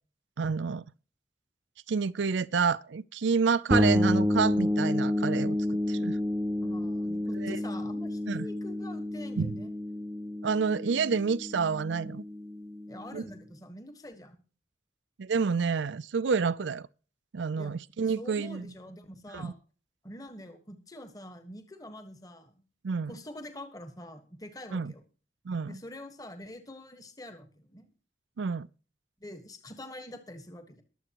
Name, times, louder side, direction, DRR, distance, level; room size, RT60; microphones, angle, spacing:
voice 1, 0.4-0.8 1.9-5.6 5.9-6.2 7.4-7.6 8.3-8.5 9.4-9.5 10.4-12.2 13.1-13.2 15.2-16.9 17.3-18.7 19.3-19.5 22.8-23.1 24.7-24.9 25.5-25.8 28.4-28.7, right 5 dB, 85° right, 0.5 m, -29 dB
sound 1, 3.7-13.3, left 1 dB, 10° right, 0.8 m, -30 dB
voice 2, 6.6-9.7 12.9-14.4 17.6-17.7 18.1-19.6 20.0-22.5 23.1-25.0 25.7-27.9 29.2-30.8, left 1 dB, 20° left, 1.4 m, -45 dB
22.5 x 7.9 x 3.0 m
head